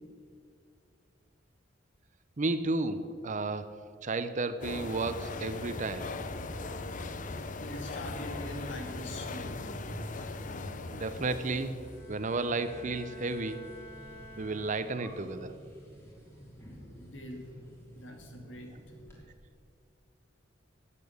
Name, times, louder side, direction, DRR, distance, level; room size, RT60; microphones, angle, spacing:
voice 1, 2.4-3.7 4.0-6.1 10.9-11.8 12.1-13.6 14.4-15.5, right 3 dB, 40° right, 11 dB, 0.6 m, -32 dB
sound 1, 4.6-12.0, left 3 dB, 45° left, 0.6 m, -39 dB
sound 2, 5.5-19.2, equal, 15° left, 3.2 m, -50 dB
voice 2, 7.6-9.6 16.8-17.5 17.9-18.8, left 1 dB, 75° left, 3 dB, 2.2 m, -43 dB
Bowed string instrument, 11.9-15.4, left 1 dB, 10° right, 1.8 m, -51 dB
14.0 x 8.5 x 6.6 m, 2.3 s
head